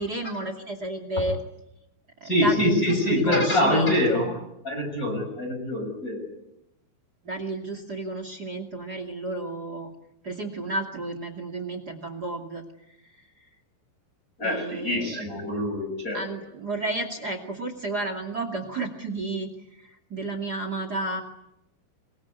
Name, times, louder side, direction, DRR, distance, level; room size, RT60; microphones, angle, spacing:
voice 1, 0.0-1.4 2.2-4.4 7.2-9.9 10.2-12.6 13.2-13.3 14.4-15.2 16.1-21.2, right 2 dB, 35° right, 9 dB, 1.5 m, -32 dB
voice 2, 2.2-4.3 4.6-6.2 14.4-16.2, left 1 dB, 15° left, 5 dB, 6.9 m, -24 dB
24.5 x 22.5 x 9.6 m, 0.84 s
omnidirectional pair, 5.9 m